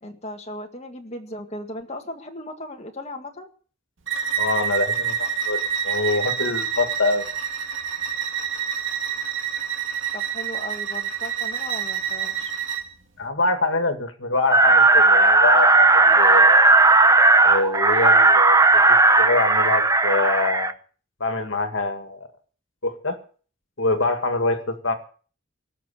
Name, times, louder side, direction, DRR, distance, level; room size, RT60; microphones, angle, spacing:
voice 1, 0.0-3.5 10.1-12.5, left 1 dB, 35° left, 3 dB, 1.8 m, -37 dB
Bowed string instrument, 4.1-12.9, right 8 dB, 70° right, 2.3 m, -27 dB
voice 2, 4.4-5.6 5.8-7.3 13.2-16.7 17.4-18.6 18.9-20.7 21.2-22.3 22.8-23.2 23.8-24.9, left 3 dB, 70° left, 7 dB, 2.0 m, -25 dB
sound 1, 14.5-20.7, right 3 dB, 15° right, 0.7 m, -15 dB
18.5 x 6.7 x 8.4 m, 0.42 s
head